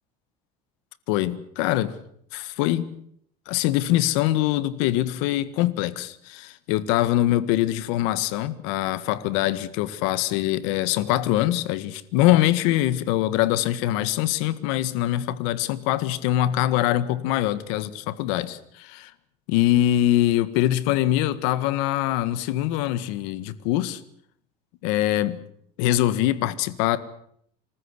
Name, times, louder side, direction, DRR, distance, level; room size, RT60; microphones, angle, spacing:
voice 1, 1.1-1.9 2.3-2.9 3.5-19.1 19.5-24.0 24.8-25.4 25.8-27.0, left 14 dB, 85° left, 1.7 m, -23 dB
26.5 x 14.5 x 9.8 m
cardioid pair, 125°, 16 cm